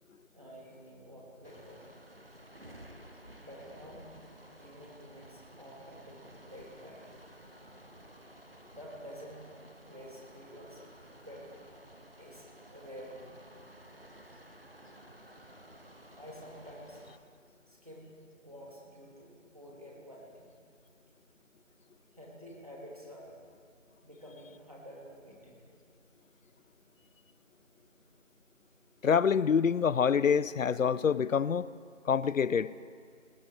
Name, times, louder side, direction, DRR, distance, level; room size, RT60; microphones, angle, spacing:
voice 1, 0.3-2.0 3.4-4.1 4.6-7.0 8.7-9.5 9.8-10.8 11.3-11.5 12.2-13.4 16.1-17.0 17.7-20.5 22.1-23.4 24.0-25.6, equal, 30° right, -3 dB, 2.2 m, -49 dB
sound 1, 1.4-17.2, right 1 dB, 50° right, 0.8 m, -54 dB
voice 2, 29.0-31.7 32.1-32.7, left 7 dB, 85° left, 19 dB, 0.5 m, -26 dB
19.5 x 9.5 x 4.9 m, 2.1 s
figure-of-eight pair, 175°, 38 cm